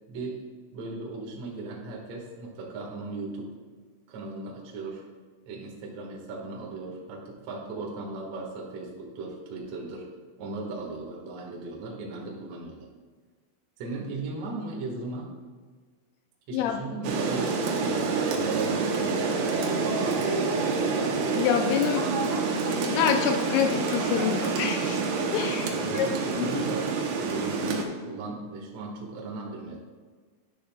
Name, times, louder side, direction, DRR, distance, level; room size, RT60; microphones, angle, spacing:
voice 1, 0.1-0.4 0.7-3.5 4.1-5.0 5.4-10.1 10.4-12.9 13.8-15.3 16.5-20.3 25.7-26.9 27.2-29.8, right 3 dB, 65° right, -2 dB, 1.6 m, -37 dB
voice 2, 16.5-16.8 21.4-22.1 22.7-25.0 25.3-26.1 26.4-26.6, left 8 dB, 85° left, 5 dB, 2.8 m, -27 dB
Rain, 17.0-27.8, right 4 dB, 90° right, 2.1 m, -27 dB
11.0 x 10.5 x 2.4 m, 1.5 s
omnidirectional pair, 5.9 m